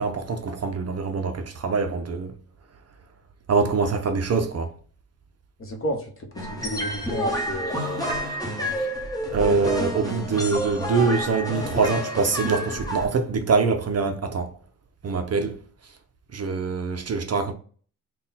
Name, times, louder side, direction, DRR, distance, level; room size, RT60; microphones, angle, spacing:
voice 1, 0.0-2.4 3.5-4.7 9.3-14.5 15.0-15.6 16.3-17.5, right 4 dB, 40° right, 0.5 m, -24 dB
voice 2, 5.6-8.2 8.6-8.7, equal, 35° left, 0.9 m, -32 dB
sound 1, 6.4-13.1, equal, 10° left, 1.1 m, -29 dB
3.9 x 2.3 x 4.0 m
cardioid pair, 130°, 40 cm